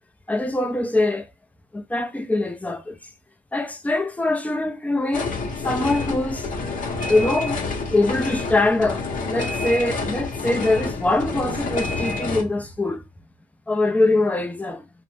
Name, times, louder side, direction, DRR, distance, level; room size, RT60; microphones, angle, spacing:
voice 1, 0.3-1.3 1.7-3.0 3.5-5.3 5.6-6.5 7.1-7.6 7.9-13.0 13.7-14.9, left 2 dB, 5° left, 0.5 m, -23 dB
sound 1, 5.1-12.4, left 3 dB, 45° left, 0.8 m, -28 dB
2.5 x 2.1 x 3.1 m
cardioid pair, 95°, 20 cm